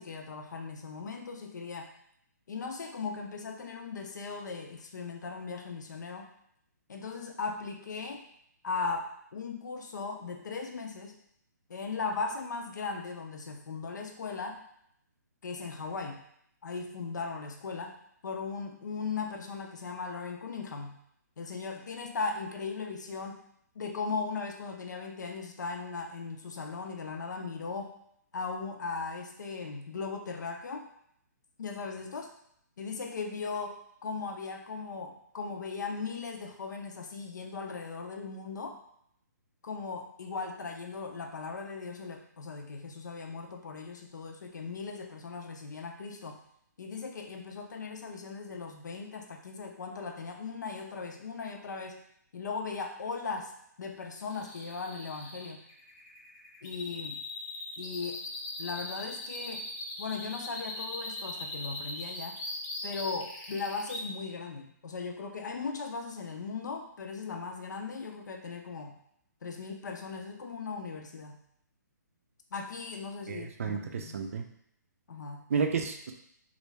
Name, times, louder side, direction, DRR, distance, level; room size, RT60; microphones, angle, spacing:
voice 1, 0.0-1.9 2.5-6.3 6.9-8.2 8.6-11.1 11.7-14.6 15.4-16.2 16.6-17.9 18.2-21.0 21.4-23.4 23.7-27.9 28.3-30.8 31.6-32.3 32.8-38.8 39.6-46.4 46.8-52.0 52.3-53.5 53.8-55.6 56.6-57.2 57.8-58.2 58.6-59.6 60.0-62.4 62.8-68.9 69.4-71.4 72.5-74.2 75.1-75.5, left 4 dB, 75° left, 3 dB, 0.6 m, -38 dB
sound 1, 54.3-64.0, left 2 dB, 20° left, 0.5 m, -40 dB
voice 2, 73.3-74.4 75.5-76.1, right 6 dB, 50° right, 5 dB, 0.4 m, -31 dB
3.1 x 2.5 x 3.3 m, 0.70 s
hypercardioid pair, 170°, 10 cm